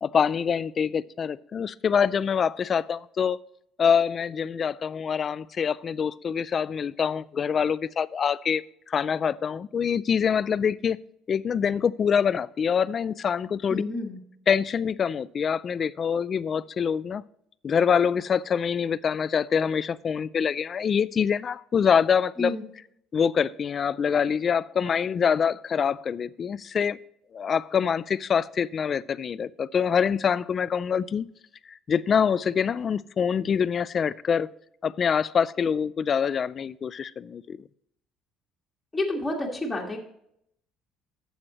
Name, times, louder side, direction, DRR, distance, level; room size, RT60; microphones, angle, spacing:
voice 1, 0.0-3.4 3.8-11.0 11.3-13.8 14.5-17.2 17.6-22.5 23.1-27.0 27.3-31.3 31.7-34.5 34.8-37.6, left 7 dB, 30° left, 18 dB, 0.3 m, -25 dB
voice 2, 13.7-14.2 22.4-22.6 38.9-40.0, left 1 dB, 10° left, -2 dB, 1.7 m, -29 dB
12.0 x 7.9 x 3.0 m, 0.72 s
cardioid pair, 160°, 0 cm